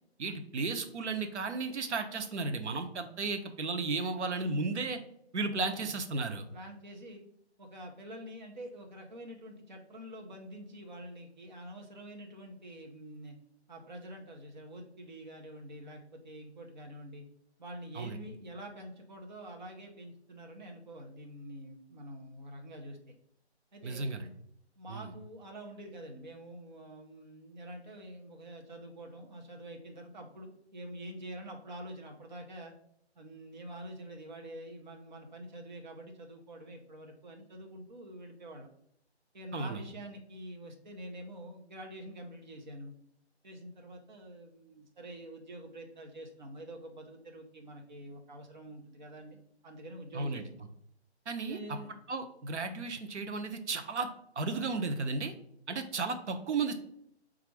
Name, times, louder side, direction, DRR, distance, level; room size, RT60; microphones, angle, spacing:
voice 1, 0.2-5.0 5.3-6.4 17.9-18.2 23.8-24.3 24.9-25.1 39.5-39.8 50.1-50.5 51.3-51.6 52.1-54.1 54.4-55.3 55.7-56.8, right 3 dB, 85° right, 6 dB, 0.7 m, -34 dB
voice 2, 5.5-5.9 6.5-7.2 7.6-13.4 13.7-17.3 17.6-23.1 23.7-24.1 24.8-32.7 33.2-38.7 39.3-42.9 43.4-49.4 49.6-50.5 51.4-51.9 56.3-56.4, right 1 dB, 45° right, 2 dB, 0.7 m, -46 dB
4.0 x 2.4 x 4.6 m, 0.72 s
hypercardioid pair, 175°, 34 cm